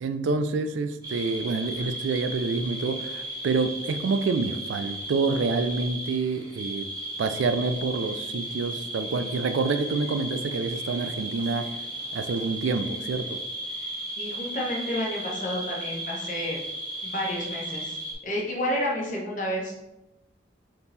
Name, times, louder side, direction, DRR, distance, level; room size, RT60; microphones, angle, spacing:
voice 1, 0.0-6.9 7.2-11.7 12.1-13.4, right 4 dB, 80° right, 9 dB, 0.4 m, -27 dB
sound 1, 1.0-18.1, right 1 dB, 20° right, 0.9 m, -35 dB
voice 2, 14.2-16.6 17.0-18.0 18.2-19.7, left 1 dB, 45° left, -3 dB, 1.0 m, -30 dB
3.6 x 2.9 x 4.1 m, 0.95 s
head